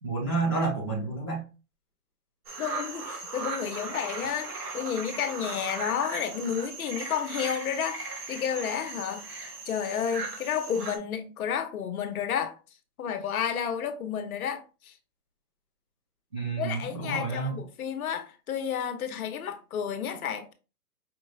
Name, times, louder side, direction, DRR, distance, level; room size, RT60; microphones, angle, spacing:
voice 1, 0.0-1.4 16.3-17.6, right 3 dB, 20° right, 0.4 m, -29 dB
sound 1, 2.5-11.0, right 3 dB, 75° right, 1.6 m, -38 dB
voice 2, 2.6-12.6 13.0-14.9 16.6-20.5, left 8 dB, 65° left, 0.9 m, -31 dB
5.2 x 3.0 x 2.3 m
hypercardioid pair, 145°, 48 cm